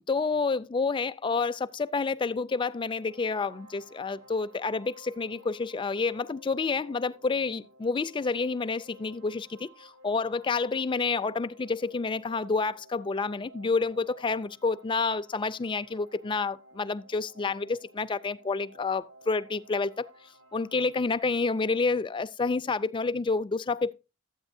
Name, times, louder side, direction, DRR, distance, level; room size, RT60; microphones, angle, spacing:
voice 1, 0.1-20.1 20.5-23.9, left 4 dB, 25° left, 0.4 m, -29 dB
sound 1, 2.8-21.6, right 1 dB, 90° right, 2.5 m, -55 dB
12.5 x 8.6 x 2.6 m
head